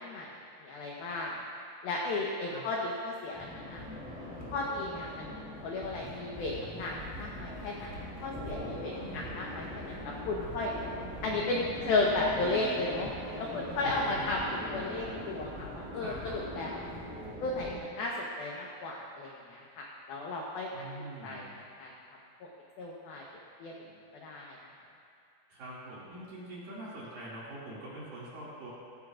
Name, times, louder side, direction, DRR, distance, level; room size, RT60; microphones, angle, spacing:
voice 1, 0.0-1.4 1.8-3.8 4.5-7.9 8.2-10.7 11.2-13.1 13.4-14.4 14.7-16.9 17.4-20.7 21.2-21.5 21.8-21.9 22.4-22.5 22.8-23.2 23.6-23.7 24.2-24.6, left 2 dB, 85° left, -2 dB, 2.1 m, -34 dB
sound 1, 3.3-17.7, left 1 dB, ahead, 2.3 m, -41 dB
voice 2, 8.9-9.3 10.4-10.5 13.8-13.9 15.9-16.5 20.7-21.5 25.5-28.7, right 1 dB, 50° right, -8 dB, 3.5 m, -44 dB
18.5 x 15.5 x 2.5 m, 2.5 s
omnidirectional pair, 5.9 m